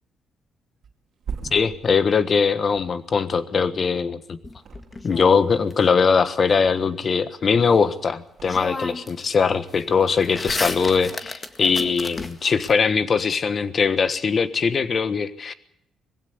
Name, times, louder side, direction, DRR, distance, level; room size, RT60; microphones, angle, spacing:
Thump thud, 0.8-4.1 4.5-5.3 5.6-7.1 7.4-9.0 9.3-9.9 10.4-11.4 11.7-11.9, right 6 dB, 60° right, 2.4 m, -41 dB
voice 1, 1.5-4.4 5.0-15.5, left 5 dB, 45° left, 13 dB, 1.4 m, -21 dB
sound 1, 4.4-5.7 7.9-8.0 8.4-9.3 9.6-12.7, left 2 dB, 25° left, 1.9 m, -33 dB
21.0 x 16.0 x 8.2 m, 0.79 s
cardioid pair, 90°, 0 cm